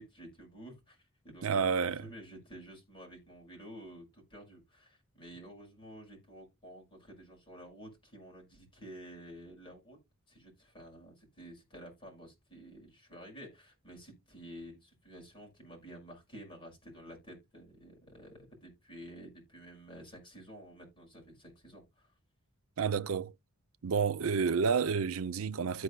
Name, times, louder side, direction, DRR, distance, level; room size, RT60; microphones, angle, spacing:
voice 1, 0.0-10.0 10.3-22.1, equal, 25° left, 5.8 m, -51 dB
voice 2, 1.4-2.0 22.8-23.3 23.8-25.8, right 5 dB, 75° right, 0.5 m, -30 dB
14.0 x 4.8 x 2.2 m
head